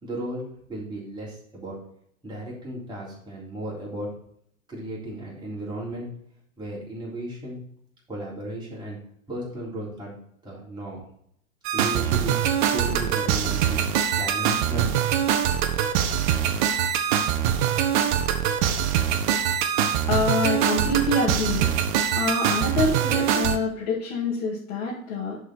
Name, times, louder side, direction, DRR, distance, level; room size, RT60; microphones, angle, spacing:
voice 1, 0.0-1.8 2.2-4.1 4.7-6.1 6.6-7.6 8.1-9.0 9.3-11.0 11.7-12.4 12.7-13.9 14.2-14.9, right 1 dB, 10° right, -5 dB, 3.7 m, -35 dB
sound 1, 11.6-23.6, right 9 dB, 35° right, 0.8 m, -23 dB
voice 2, 20.1-21.8 22.1-25.4, left 2 dB, 45° left, -5 dB, 2.3 m, -26 dB
10.5 x 4.9 x 4.2 m, 0.68 s
figure-of-eight pair, 105°, 41 cm